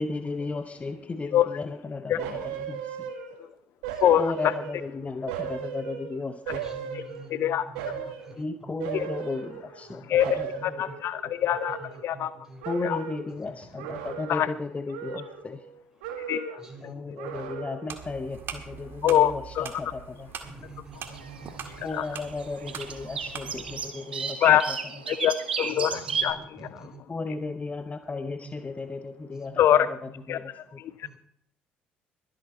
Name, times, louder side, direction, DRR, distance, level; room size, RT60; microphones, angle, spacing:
voice 1, 0.0-3.0 4.2-6.7 8.4-10.5 10.8-10.9 12.7-15.6 16.8-20.3 21.8-24.5 27.1-29.9 30.3-30.8, left 3 dB, 25° left, 10 dB, 0.8 m, -35 dB
sound 1, 2.2-3.5 3.8-4.9 5.3-7.4 7.7-8.3 8.8-9.9 10.2-12.3 12.6-13.3 13.8-14.6 14.9-15.7 16.0-16.7 17.2-18.0 18.3-18.5, right 8 dB, 70° right, 1.8 m, -37 dB
voice 2, 4.0-4.5 6.9-7.0 7.3-7.6 8.0-8.1 8.9-9.1 10.1-11.8 12.0-12.3 12.8-13.0 14.3-14.5 16.3-16.6 19.0-19.7 21.9-22.1 24.4-24.7 25.1-26.9 29.6-29.9 30.3-30.9, left 11 dB, 55° left, 16 dB, 0.5 m, -24 dB
voice 3, 6.6-8.7 10.0-10.9 11.8-12.6 13.5-13.6 13.9-14.2 16.6-17.2 20.4-21.9 22.9-24.0 25.8-27.0 28.6-28.7 29.3-29.6 31.0-31.2, right 3 dB, 10° right, 3 dB, 4.4 m, -47 dB
sound 2, 17.9-23.9, right 7 dB, 45° right, 1.8 m, -42 dB
sound 3, 20.9-26.2, right 6 dB, 90° right, 1.1 m, -34 dB
22.0 x 7.8 x 4.3 m, 0.71 s
figure-of-eight pair, 50°, 5 cm